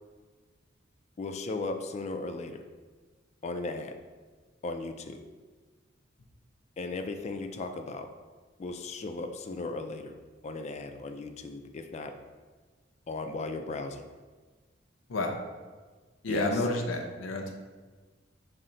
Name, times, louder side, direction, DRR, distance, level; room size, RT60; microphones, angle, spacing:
voice 1, 1.2-2.6 3.4-4.0 4.6-5.2 6.8-8.1 8.6-10.2 10.4-12.1 13.1-14.0 16.3-16.6, left 3 dB, 35° left, 6 dB, 0.3 m, -36 dB
voice 2, 16.2-17.5, left 2 dB, 90° left, 3 dB, 0.6 m, -30 dB
5.5 x 2.0 x 3.7 m, 1.4 s
head